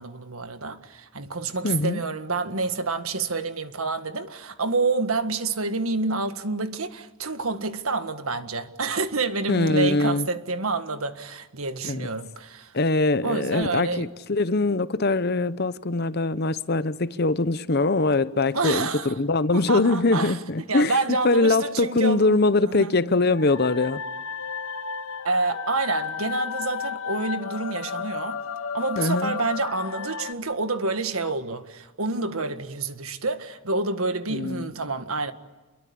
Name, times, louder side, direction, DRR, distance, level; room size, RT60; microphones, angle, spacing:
voice 1, 0.0-12.7 13.2-14.1 18.5-19.2 19.5-20.4 20.7-23.0 25.2-28.4 28.7-35.3, right 3 dB, 85° right, 1.8 m, -28 dB
voice 2, 1.6-2.0 9.5-10.3 11.8-12.1 12.7-20.9 21.2-24.0 29.0-29.4 34.3-34.7, left 2 dB, 50° left, 0.9 m, -22 dB
sound 1, 23.3-30.3, left 6 dB, 80° left, 1.5 m, -33 dB
28.5 x 22.5 x 8.7 m
head